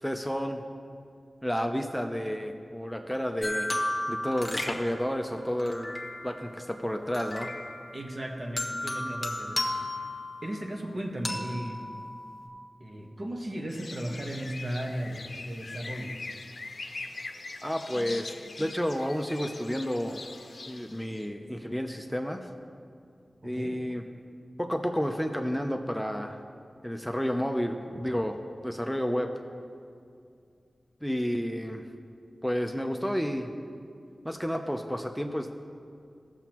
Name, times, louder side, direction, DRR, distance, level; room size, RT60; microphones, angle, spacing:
voice 1, 0.0-0.6 1.4-3.7 4.1-6.0 6.2-7.5 17.6-18.3 18.6-20.2 20.7-22.5 23.4-24.0 24.6-26.4 26.8-28.4 28.6-29.3 31.0-31.8 32.4-33.5 34.2-35.5, equal, ahead, 4 dB, 0.6 m, -31 dB
sound 1, 3.4-6.5 7.1-8.1 8.6-10.7 11.2-12.5, left 1 dB, 30° left, 1.3 m, -34 dB
voice 2, 7.9-9.7 10.4-11.8 12.8-16.2 23.4-23.8, right 1 dB, 50° right, 0 dB, 1.4 m, -36 dB
sound 2, 13.7-21.3, left 3 dB, 70° left, 0.6 m, -42 dB
15.5 x 7.0 x 3.0 m, 2.4 s
cardioid pair, 40°, 0 cm